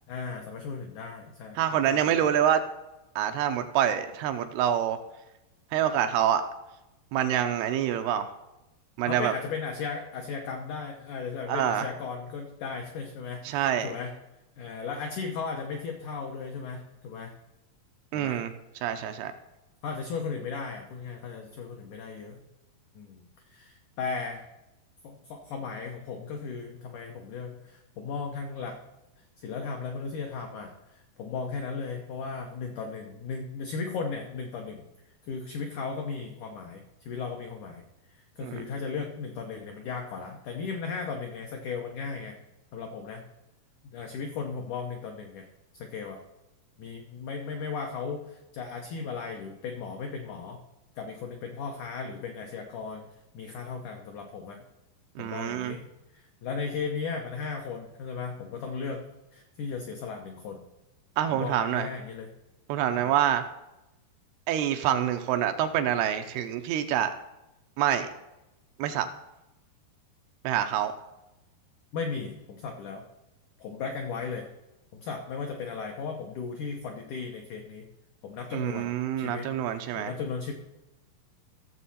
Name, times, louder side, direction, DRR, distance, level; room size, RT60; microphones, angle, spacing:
voice 1, 0.1-1.6 1.9-2.3 9.1-14.1 14.6-17.3 18.1-18.4 19.8-22.4 23.0-23.2 23.5-24.4 25.0-28.8 29.2-34.8 35.3-37.8 38.1-42.4 42.7-43.2 43.9-45.5 45.7-46.2 46.8-50.6 51.0-53.1 53.3-54.6 55.2-59.0 59.3-60.6 61.3-62.3 63.0-63.1 71.9-73.0 73.6-74.5 74.9-77.9 78.2-78.9 79.2-79.5 80.0-80.5, left 5 dB, 80° left, 3 dB, 1.7 m, -36 dB
voice 2, 1.6-2.6 3.2-5.0 5.7-6.4 7.1-8.3 9.0-9.3 11.5-11.9 13.4-13.9 18.1-18.5 18.8-19.3 38.4-38.6 55.2-55.8 61.2-61.9 62.7-63.4 64.5-67.1 67.8-68.1 68.8-69.1 70.4-70.9 78.5-80.1, right 10 dB, 80° right, 8 dB, 2.5 m, -26 dB
15.0 x 7.3 x 4.2 m, 0.96 s
omnidirectional pair, 4.8 m